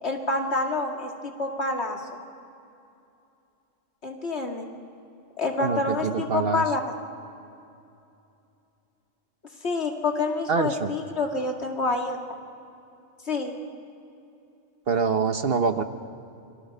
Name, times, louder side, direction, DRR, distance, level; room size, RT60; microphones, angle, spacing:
voice 1, 0.0-2.0 4.0-4.7 5.4-6.8 9.6-12.2 13.3-13.5, left 3 dB, 60° left, 2 dB, 2.6 m, -27 dB
voice 2, 5.6-6.6 10.5-10.9 14.9-15.8, right 5 dB, 55° right, 9 dB, 1.1 m, -25 dB
29.5 x 24.0 x 5.5 m, 2.7 s
omnidirectional pair, 1.3 m